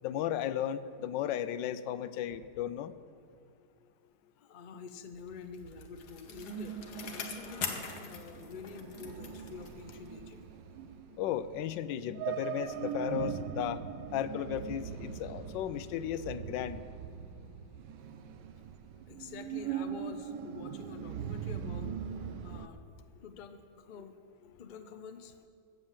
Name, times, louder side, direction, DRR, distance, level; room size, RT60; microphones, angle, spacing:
voice 1, 0.0-2.9 11.2-13.8 14.1-16.9, left 10 dB, 90° left, 14 dB, 1.3 m, -35 dB
voice 2, 4.4-6.8 7.1-10.4 19.1-22.0 22.4-22.8 23.2-24.1 24.6-25.3, left 5 dB, 45° left, 7 dB, 0.6 m, -47 dB
sound 1, 5.1-22.7, right 8 dB, 85° right, 1.3 m, -41 dB
Bicycle, 5.3-10.2 10.5-10.6, left 6 dB, 65° left, 1.6 m, -43 dB
15.5 x 7.8 x 7.4 m, 2.3 s
omnidirectional pair, 1.9 m